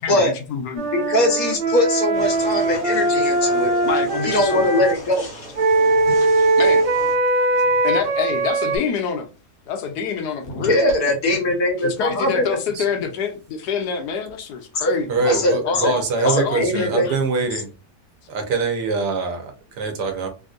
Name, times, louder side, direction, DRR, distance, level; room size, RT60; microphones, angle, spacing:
voice 1, 0.0-0.9 3.8-4.7 6.6-6.9 7.8-9.3 9.7-10.8 11.8-17.2, left 7 dB, 75° left, 1.2 m, -27 dB
Wind instrument woodwind instrument, 0.8-5.0 5.6-8.8, right 2 dB, 60° right, 0.9 m, -20 dB
voice 2, 0.9-3.7 4.2-5.3 10.5-12.6 14.8-14.9 15.3-15.9 16.2-17.1, left 1 dB, 60° left, 1.4 m, -21 dB
sound 1, 2.1-7.2, equal, 35° left, 1.3 m, -37 dB
voice 3, 15.1-17.7 18.3-19.4 19.8-20.3, right 4 dB, 75° right, 1.4 m, -23 dB
3.4 x 2.6 x 2.4 m
omnidirectional pair, 1.8 m